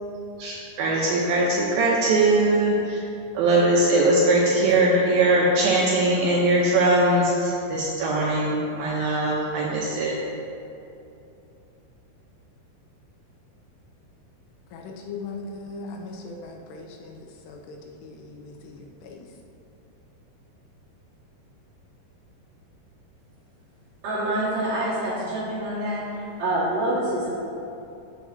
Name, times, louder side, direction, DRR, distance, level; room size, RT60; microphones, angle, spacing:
voice 1, 0.4-3.0 3.3-10.2, right 2 dB, 80° right, -3 dB, 2.2 m, -21 dB
voice 2, 14.7-19.3, left 3 dB, 80° left, 2 dB, 2.7 m, -39 dB
voice 3, 24.0-27.3, right 1 dB, 60° right, -8 dB, 2.9 m, -26 dB
12.0 x 7.5 x 2.7 m, 2.8 s
omnidirectional pair, 5.0 m